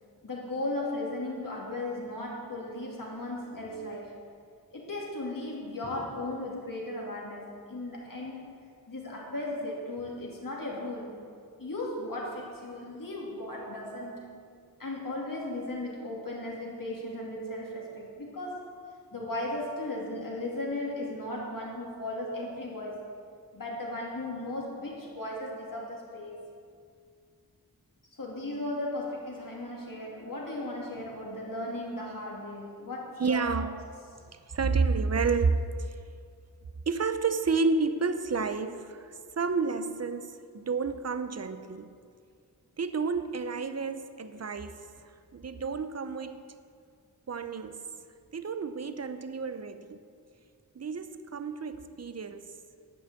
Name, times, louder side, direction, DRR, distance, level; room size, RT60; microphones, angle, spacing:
voice 1, 0.2-4.2 4.7-8.6 8.9-11.1 11.6-14.4 14.8-18.8 19.1-23.1 23.5-26.4 28.1-33.6, left 1 dB, 60° left, -3 dB, 2.6 m, -36 dB
voice 2, 33.2-33.7 34.5-35.7 36.9-41.9 42.8-44.8 45.3-46.4 47.3-47.8 48.3-50.0 50.7-52.5, right 4 dB, 45° right, 10 dB, 0.7 m, -30 dB
11.5 x 5.9 x 8.5 m, 2.2 s
wide cardioid pair, 60°, 37 cm